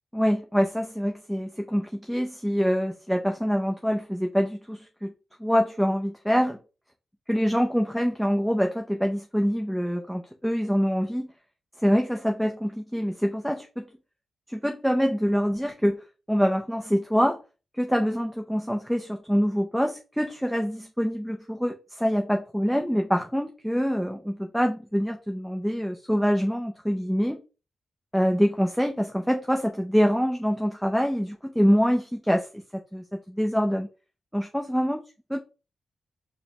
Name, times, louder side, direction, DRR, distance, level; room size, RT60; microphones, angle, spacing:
voice 1, 0.1-5.1 5.4-6.6 7.3-11.3 11.8-13.9 14.5-16.0 16.3-17.4 17.7-27.4 28.1-32.5 32.9-33.9 34.3-35.0 35.3-35.4, equal, ahead, 0.4 m, -25 dB
4.9 x 2.0 x 2.8 m
wide cardioid pair, 110°, 0 cm